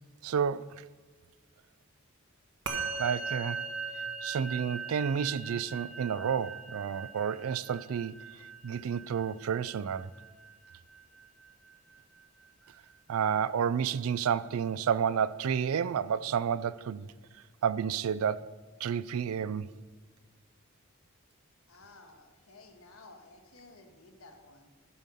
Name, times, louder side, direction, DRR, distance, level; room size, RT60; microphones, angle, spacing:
voice 1, 0.2-0.8 3.0-3.6 4.2-10.1 13.1-17.1 17.6-18.5 18.8-19.7, right 7 dB, 75° right, 0.4 m, -30 dB
Musical instrument, 2.7-12.2, right 5 dB, 55° right, 1.3 m, -40 dB
voice 2, 21.7-24.7, left 2 dB, 75° left, 1.5 m, -54 dB
11.0 x 7.4 x 5.4 m
head